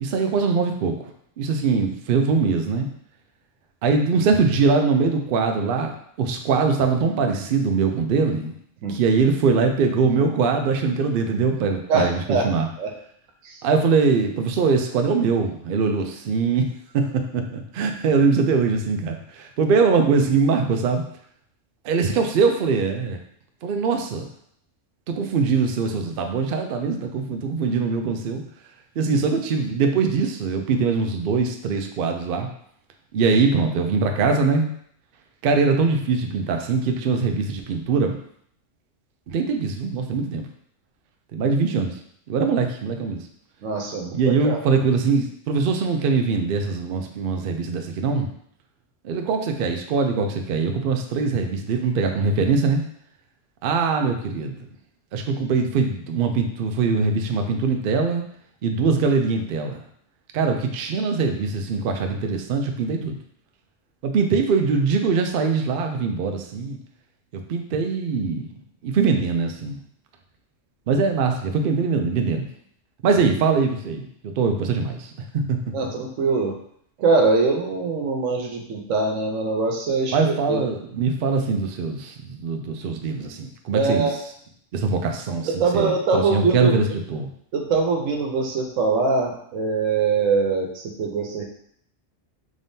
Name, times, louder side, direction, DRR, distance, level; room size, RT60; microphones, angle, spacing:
voice 1, 0.0-1.0 1.4-2.9 3.8-8.5 8.9-12.2 12.4-12.7 13.6-21.0 21.8-23.2 23.6-24.3 25.2-28.4 29.0-32.5 33.1-34.7 35.4-38.2 39.3-40.4 41.3-42.0 42.3-43.2 44.1-48.3 49.0-52.8 53.6-54.6 55.1-58.2 58.6-59.8 60.3-63.2 64.0-66.8 67.3-68.5 68.8-69.8 70.9-72.5 73.0-75.6 80.1-84.1 84.7-87.3, right 4 dB, 60° right, 4 dB, 0.6 m, -22 dB
voice 2, 11.9-12.5 12.8-12.9 13.4-13.6 43.6-44.6 75.7-76.5 77.0-80.6 83.7-84.2 85.4-86.7 87.5-91.4, right 4 dB, 85° right, 1 dB, 1.1 m, -23 dB
3.7 x 3.5 x 2.7 m, 0.65 s
omnidirectional pair, 1.3 m